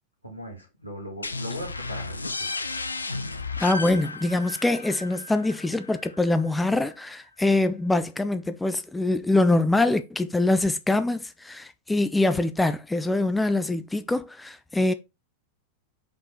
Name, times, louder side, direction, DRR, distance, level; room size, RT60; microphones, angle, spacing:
voice 1, 0.2-2.5, equal, 90° right, 2.3 m, -38 dB
sound 1, 1.2-6.7, left 3 dB, 80° left, 0.6 m, -34 dB
voice 2, 3.6-14.9, left 2 dB, 5° left, 0.5 m, -24 dB
5.3 x 4.3 x 4.4 m
figure-of-eight pair, 90°, 0 cm